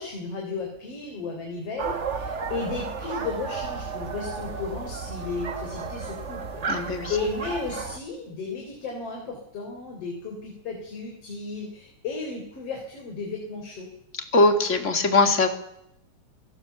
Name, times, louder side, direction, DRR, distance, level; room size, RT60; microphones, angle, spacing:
voice 1, 0.0-13.9, left 4 dB, 55° left, 1 dB, 4.8 m, -34 dB
sound 1, 1.8-8.0, right 5 dB, 40° right, 1.0 m, -33 dB
voice 2, 6.7-7.1 14.3-15.5, left 2 dB, 25° left, 6 dB, 2.6 m, -20 dB
27.0 x 18.0 x 7.0 m, 0.79 s
omnidirectional pair, 3.4 m